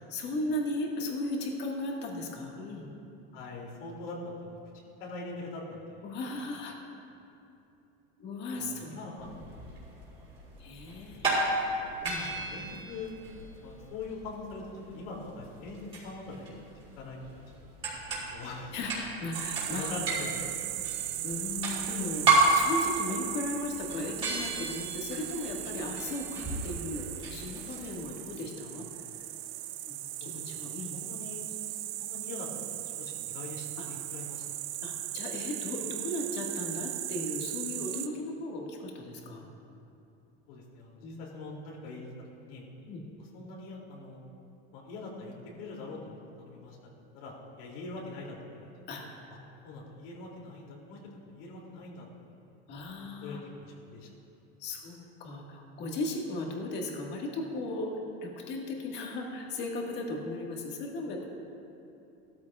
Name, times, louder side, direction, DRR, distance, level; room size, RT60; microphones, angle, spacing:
voice 1, 0.1-2.9 6.0-6.8 8.2-8.9 10.6-11.3 12.0-12.3 18.7-20.0 21.2-28.9 29.9-31.0 33.8-33.9 34.8-39.5 41.0-41.3 42.9-43.0 48.9-49.0 52.7-53.4 54.6-57.9 58.2-61.3, left 2 dB, 35° left, -1 dB, 1.8 m, -36 dB
voice 2, 3.3-4.6 5.0-6.0 8.5-9.5 10.9-11.6 12.2-13.1 13.6-16.6 17.0-17.4 18.3-18.8 19.7-20.3 20.7-21.1 30.2-31.4 32.0-34.5 40.5-42.1 42.4-42.6 43.3-44.2 44.7-46.8 47.1-48.7 49.0-49.1 49.6-51.0 51.2-52.1 53.2-54.1, left 3 dB, 75° left, -3 dB, 2.9 m, -43 dB
sound 1, 9.2-27.9, right 2 dB, 20° right, 3.0 m, -33 dB
sound 2, 19.3-38.1, right 14 dB, 75° right, 0.7 m, -38 dB
16.5 x 13.5 x 2.4 m, 2.7 s
cardioid pair, 165°, 29 cm